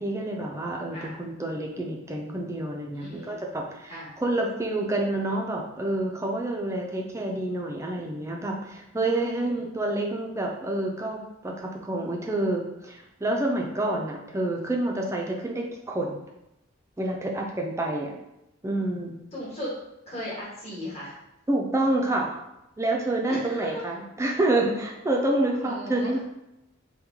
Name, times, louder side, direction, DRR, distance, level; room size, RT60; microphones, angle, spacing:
voice 1, 0.0-16.2 17.0-18.1 18.6-19.1 21.5-22.3 22.8-26.2, right 2 dB, 15° right, 0 dB, 0.4 m, -28 dB
voice 2, 2.9-3.4 3.9-4.1 9.6-9.7 19.3-19.8 20.1-21.1 23.3-23.8 25.6-26.1, equal, 30° left, -7 dB, 1.2 m, -36 dB
3.0 x 2.2 x 3.5 m, 0.88 s
head